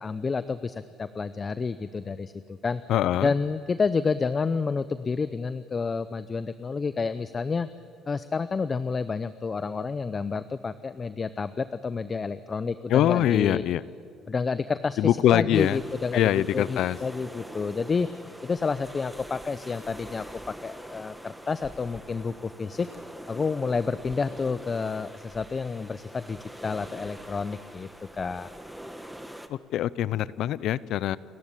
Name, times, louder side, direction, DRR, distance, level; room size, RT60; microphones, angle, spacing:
voice 1, 0.0-2.8 3.2-7.7 8.1-13.6 14.3-15.0 15.3-18.1 18.4-22.9 23.3-28.5, left 4 dB, 30° left, 13 dB, 0.7 m, -29 dB
voice 2, 2.9-3.3 12.9-13.8 15.0-15.8 16.1-17.0 29.5-31.2, left 12 dB, 65° left, 18 dB, 0.7 m, -23 dB
sound 1, 15.5-29.5, equal, 5° right, 1.5 m, -44 dB
29.5 x 14.5 x 10.0 m, 2.4 s
cardioid pair, 105°, 0 cm